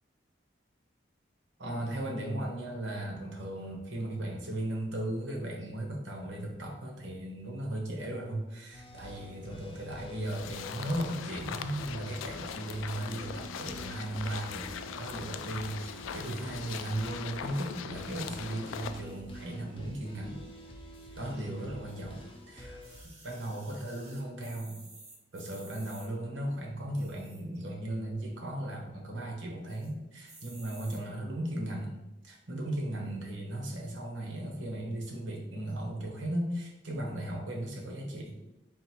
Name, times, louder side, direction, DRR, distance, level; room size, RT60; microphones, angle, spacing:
voice 1, 1.6-20.4 21.2-22.8 23.2-24.9 25.3-38.4, right 1 dB, 80° right, 0 dB, 1.0 m, -36 dB
sound 1, 8.7-23.1, equal, 25° left, 0.5 m, -48 dB
sound 2, 10.2-19.0, left 7 dB, 85° left, 0.3 m, -41 dB
sound 3, 22.8-26.1 26.8-27.6 28.0-28.1 28.3-28.4 28.8-29.2 29.7-29.9 30.3-31.0 31.7-31.8, right 3 dB, 35° right, 0.7 m, -53 dB
3.8 x 2.5 x 4.3 m, 0.97 s
head